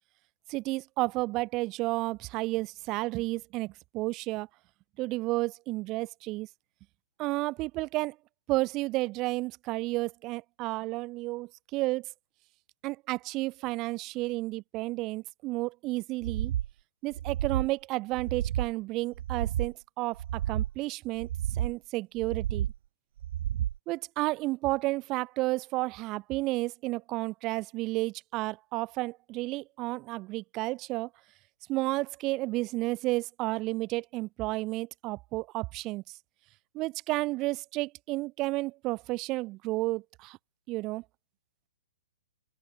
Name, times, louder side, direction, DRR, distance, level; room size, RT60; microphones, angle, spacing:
voice 1, 0.5-4.5 5.0-6.5 7.2-8.2 8.5-12.0 12.8-16.5 17.0-21.3 21.5-22.7 23.9-31.1 31.7-36.0 36.7-40.4 40.7-41.0, right 20 dB, 30° right, 1.2 m, -32 dB
sound 1, 16.2-16.7 17.1-17.7 18.1-18.7 19.1-19.7 20.1-20.7 21.2-21.8 22.2-22.8 23.2-23.8, right 11 dB, 50° right, 4.1 m, -31 dB
open air
figure-of-eight pair, 120°, 0 cm